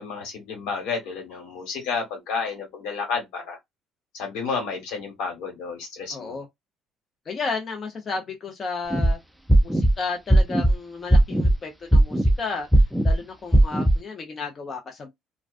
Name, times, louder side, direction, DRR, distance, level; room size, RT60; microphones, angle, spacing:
voice 1, 0.0-3.6 4.1-6.4, left 5 dB, 85° left, 1.2 m, -31 dB
voice 2, 6.1-6.5 7.3-9.2 9.6-15.1, left 4 dB, 35° left, 0.6 m, -33 dB
sound 1, 8.9-9.1 9.5-9.9 10.3-10.7 11.1-11.5 11.9-12.3 12.7-13.1 13.5-14.0, right 1 dB, ahead, 0.3 m, -16 dB
2.3 x 2.2 x 2.4 m
cardioid pair, 135°, 0 cm